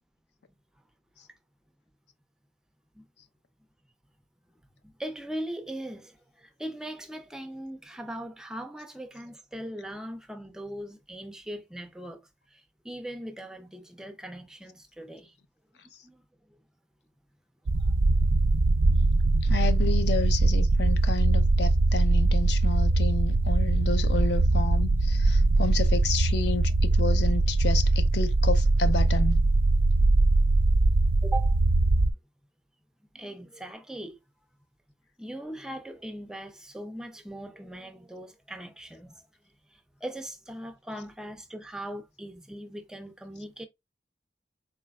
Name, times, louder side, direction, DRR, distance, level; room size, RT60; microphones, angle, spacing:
voice 1, 4.8-15.3 16.0-16.2 31.2-32.1 33.1-34.2 35.2-39.2 39.7-43.7, right 1 dB, 5° right, 0.3 m, -40 dB
sound 1, 17.7-32.1, right 2 dB, 85° right, 0.4 m, -22 dB
voice 2, 19.4-29.4, left 4 dB, 70° left, 0.5 m, -31 dB
3.9 x 3.2 x 2.2 m
head